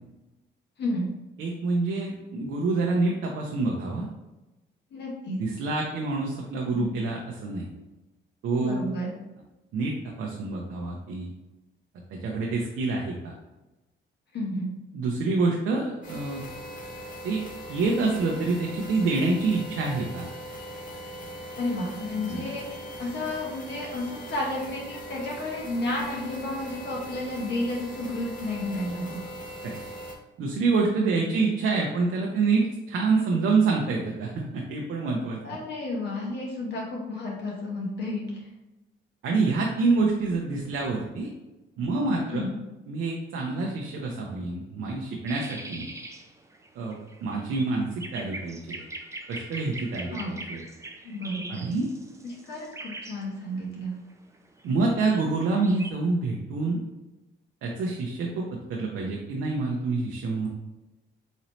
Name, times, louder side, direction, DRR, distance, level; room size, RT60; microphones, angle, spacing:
voice 1, 1.4-4.1 5.4-7.7 8.4-8.8 9.7-11.3 12.1-13.3 14.9-16.4 17.2-17.4 17.7-20.3 22.3-22.5 29.6-29.8 30.4-35.4 39.2-41.3 41.8-42.5 42.9-45.9 46.7-48.9 49.3-50.7 51.5-51.9 54.6-56.8 57.6-60.5, right 3 dB, 75° right, -1 dB, 0.6 m, -27 dB
voice 2, 4.9-5.4 6.7-6.9 8.5-9.1 14.3-14.7 21.6-29.2 31.2-31.4 35.4-38.2 42.3-42.6 50.1-50.4 51.0-51.7 52.2-53.9, left 1 dB, 60° left, -3 dB, 1.2 m, -32 dB
sound 1, 16.0-30.2, equal, 40° left, 0.8 m, -40 dB
sound 2, 45.3-55.9, right 2 dB, 15° right, 0.4 m, -42 dB
4.1 x 2.7 x 3.1 m, 1.0 s
cardioid pair, 90°, 20 cm